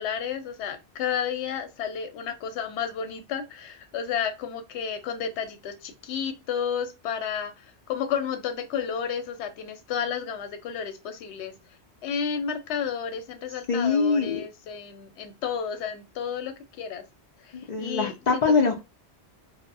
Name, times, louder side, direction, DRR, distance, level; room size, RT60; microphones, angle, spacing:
voice 1, 0.0-7.5 7.9-11.5 12.0-17.0 17.8-18.4, left 7 dB, 90° left, 0.9 m, -31 dB
voice 2, 13.7-14.4 17.7-18.8, left 4 dB, 55° left, 0.5 m, -23 dB
2.7 x 2.0 x 2.6 m
omnidirectional pair, 1.1 m